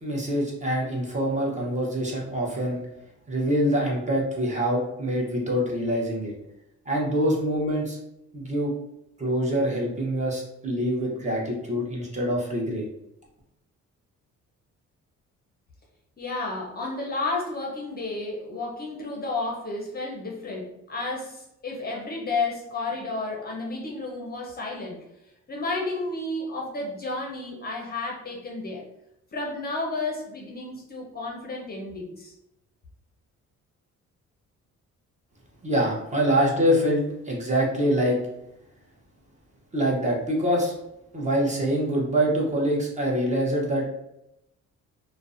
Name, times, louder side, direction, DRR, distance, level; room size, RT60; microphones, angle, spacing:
voice 1, 0.0-2.8 3.3-6.3 6.9-8.0 8.3-8.7 9.2-12.8 35.6-38.2 39.7-40.7 41.1-43.8, equal, 25° right, -3 dB, 0.7 m, -25 dB
voice 2, 16.2-25.0 25.5-28.9 29.3-32.3, left 3 dB, 30° left, -1 dB, 0.5 m, -32 dB
2.5 x 2.1 x 2.4 m, 0.85 s
cardioid pair, 90°, 30 cm